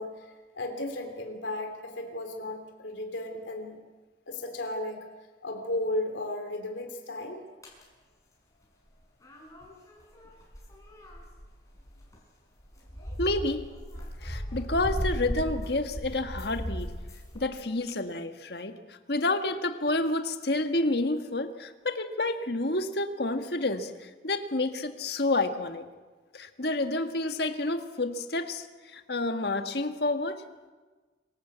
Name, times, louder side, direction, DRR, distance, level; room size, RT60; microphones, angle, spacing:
voice 1, 0.0-3.8 4.3-5.0 5.4-7.4, left 1 dB, 85° left, 4 dB, 3.2 m, -34 dB
sound 1, 7.6-7.8 9.2-12.2 12.6-17.5, equal, 20° left, 6.2 m, -36 dB
voice 2, 13.2-13.7 14.2-16.9 17.3-25.9 26.3-30.4, left 2 dB, 60° left, 7 dB, 1.7 m, -29 dB
26.5 x 17.5 x 8.1 m, 1.3 s
head